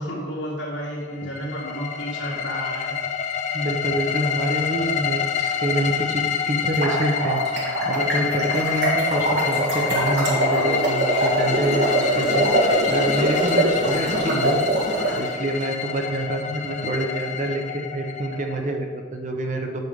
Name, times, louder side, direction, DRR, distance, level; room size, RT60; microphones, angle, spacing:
voice 1, 0.0-2.9, equal, 80° left, -4 dB, 2.8 m, -31 dB
sound 1, 1.1-18.9, left 7 dB, 40° left, 0.7 m, -28 dB
voice 2, 3.5-7.4 7.8-14.6 15.1-19.8, right 1 dB, 40° right, 3 dB, 1.0 m, -27 dB
sound 2, 6.6-15.1, right 1 dB, 60° right, 2.3 m, -23 dB
7.6 x 6.8 x 5.2 m, 1.5 s
head